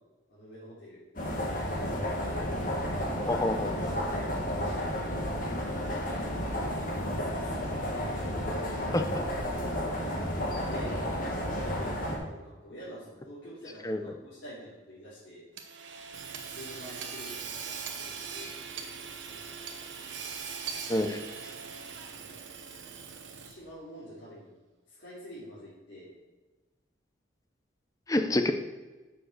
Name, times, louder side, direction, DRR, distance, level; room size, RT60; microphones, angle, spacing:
voice 1, 0.3-1.0 3.1-4.3 4.6-5.8 6.5-8.6 10.6-11.2 11.5-15.5 16.5-18.5 19.2-19.6 22.1-22.4 23.4-24.5 24.9-26.1, equal, 70° left, -11 dB, 3.1 m, -47 dB
sound 1, 1.2-12.2, equal, 45° left, 1.8 m, -32 dB
voice 2, 3.3-3.7 8.9-9.2 13.8-14.0 20.9-21.2 28.1-28.5, left 1 dB, 20° left, 6 dB, 0.6 m, -27 dB
Hammer / Sawing, 15.6-23.7, right 6 dB, 80° right, 1.0 m, -41 dB
7.4 x 6.5 x 6.6 m, 1.2 s
head